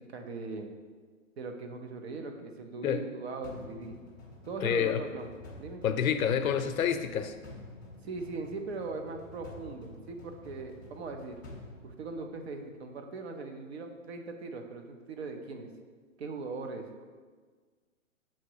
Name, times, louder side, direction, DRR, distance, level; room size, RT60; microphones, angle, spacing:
voice 1, 0.1-0.7 1.4-4.0 4.5-5.3 5.6-5.8 8.0-11.3 11.8-15.7 16.2-17.0, right 3 dB, 50° right, 5 dB, 0.8 m, -40 dB
sound 1, 3.4-12.6, left 2 dB, 15° left, 0.3 m, -50 dB
voice 2, 4.6-5.0 5.8-7.3, left 8 dB, 80° left, 9 dB, 0.7 m, -28 dB
7.2 x 3.1 x 4.7 m, 1.5 s
hypercardioid pair, 150°, 41 cm